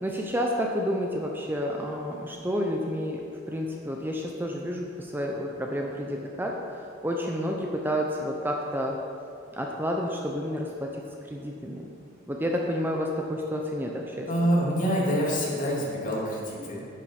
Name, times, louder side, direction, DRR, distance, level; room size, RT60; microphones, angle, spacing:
voice 1, 0.0-9.0 9.5-11.9 12.3-14.3, equal, 10° right, 0 dB, 0.8 m, -30 dB
voice 2, 14.3-16.9, equal, 45° left, -4 dB, 2.6 m, -26 dB
10.5 x 8.9 x 4.8 m, 2.4 s
head